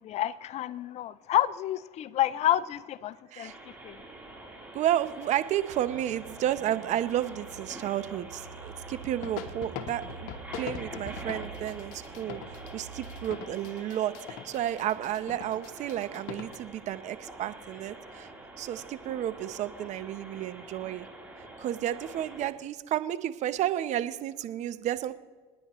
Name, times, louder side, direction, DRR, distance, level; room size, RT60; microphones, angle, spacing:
voice 1, 0.0-3.5 3.8-4.0, left 13 dB, 50° left, 0.5 m, -29 dB
sound 1, 3.4-22.5, right 2 dB, 10° right, 3.6 m, -46 dB
voice 2, 4.7-18.3 18.6-21.1 21.6-25.1, right 12 dB, 55° right, 0.8 m, -32 dB
sound 2, 5.0-6.9 9.2-16.6, left 8 dB, 65° left, 1.1 m, -43 dB
sound 3, 5.7-13.2, right 6 dB, 80° right, 2.3 m, -47 dB
28.5 x 9.8 x 3.1 m
supercardioid pair, 85°, 15 cm